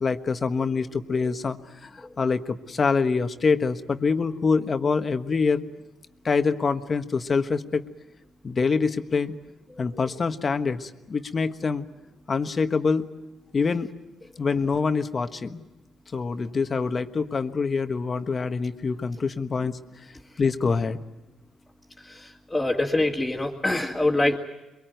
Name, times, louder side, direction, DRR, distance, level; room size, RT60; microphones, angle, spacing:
voice 1, 0.0-5.6 6.2-7.8 8.4-9.3 9.8-11.8 12.3-13.1 13.5-13.9 14.4-15.6 16.1-19.8 20.4-21.0, left 4 dB, 35° left, 8 dB, 1.3 m, -25 dB
voice 2, 22.1-24.4, left 2 dB, 10° left, -3 dB, 2.2 m, -24 dB
23.0 x 23.0 x 9.3 m, 0.99 s
cardioid pair, 90°, 0 cm